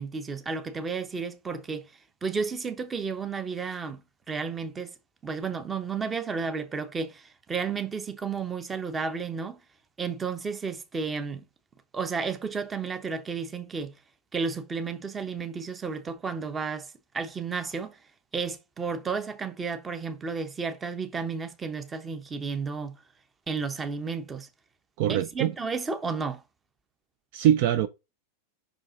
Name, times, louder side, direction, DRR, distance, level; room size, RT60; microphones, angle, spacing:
voice 1, 0.0-1.9 2.2-4.0 4.3-4.9 5.2-9.6 10.0-11.4 11.9-13.9 14.3-18.0 18.3-23.0 23.5-24.5 25.1-26.4, right 5 dB, 15° right, 0.9 m, -32 dB
voice 2, 25.0-25.5 27.3-27.9, right 11 dB, 45° right, 0.5 m, -23 dB
5.7 x 5.1 x 3.7 m
figure-of-eight pair, 90°, 0 cm